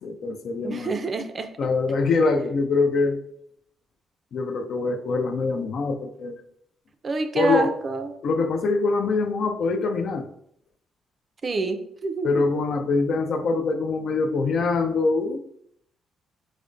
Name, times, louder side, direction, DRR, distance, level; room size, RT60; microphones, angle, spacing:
voice 1, 0.0-0.9 1.6-3.2 4.3-6.4 7.3-7.7 8.2-10.3 12.2-15.4, left 3 dB, 65° left, 6 dB, 0.4 m, -24 dB
voice 2, 0.6-1.5 7.0-8.1 11.4-12.5, right 3 dB, 40° right, 8 dB, 0.4 m, -27 dB
4.9 x 2.1 x 2.4 m, 0.70 s
cardioid pair, 90°, 0 cm